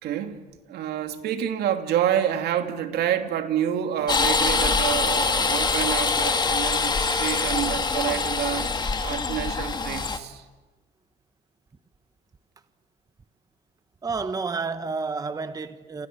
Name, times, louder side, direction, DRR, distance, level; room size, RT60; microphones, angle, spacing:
voice 1, 0.0-0.4 0.7-8.7 9.0-10.4, right 10 dB, 75° right, 2.8 m, -28 dB
sound 1, 4.1-10.2, left 4 dB, 25° left, 2.0 m, -24 dB
voice 2, 14.0-16.1, right 4 dB, 20° right, 1.1 m, -30 dB
30.0 x 28.5 x 6.9 m
cardioid pair, 110°, 17 cm